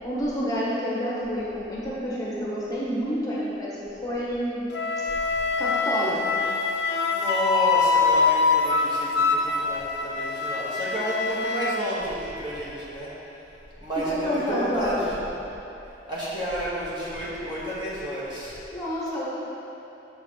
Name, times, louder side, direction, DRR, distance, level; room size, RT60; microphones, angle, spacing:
voice 1, 0.0-4.7 5.6-6.2 14.1-15.1 18.7-19.2, equal, 20° left, -7 dB, 1.1 m, -28 dB
Wind instrument woodwind instrument, 4.7-11.8, left 4 dB, 70° left, 0.5 m, -24 dB
voice 2, 6.6-13.1 13.8-15.4 16.1-18.6, equal, 30° right, -9 dB, 1.5 m, -31 dB
6.7 x 6.7 x 3.2 m, 3.0 s
head